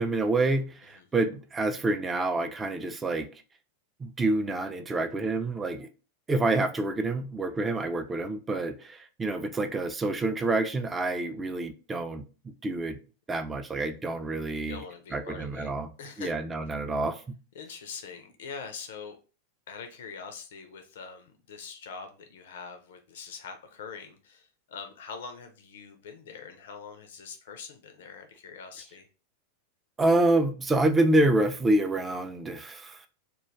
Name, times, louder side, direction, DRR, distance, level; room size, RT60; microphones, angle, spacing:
voice 1, 0.0-3.3 4.0-5.9 6.3-12.2 12.6-13.0 13.3-14.8 15.1-15.9 16.2-17.2 30.0-33.1, right 2 dB, 15° right, 0.3 m, -27 dB
voice 2, 14.6-15.7 16.0-16.3 17.5-19.2 19.7-29.1, left 5 dB, 60° left, 0.4 m, -43 dB
2.2 x 2.2 x 3.0 m
figure-of-eight pair, 90°, 0 cm